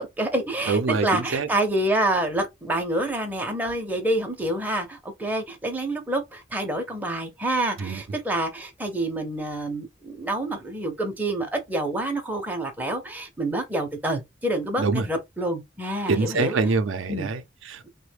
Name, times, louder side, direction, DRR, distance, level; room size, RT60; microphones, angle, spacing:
voice 1, 0.0-16.6 17.1-17.3, right 1 dB, 10° right, 0.5 m, -27 dB
voice 2, 0.7-1.5 7.8-8.0 14.8-15.1 16.1-17.9, right 4 dB, 70° right, 0.5 m, -25 dB
3.2 x 2.1 x 3.2 m
head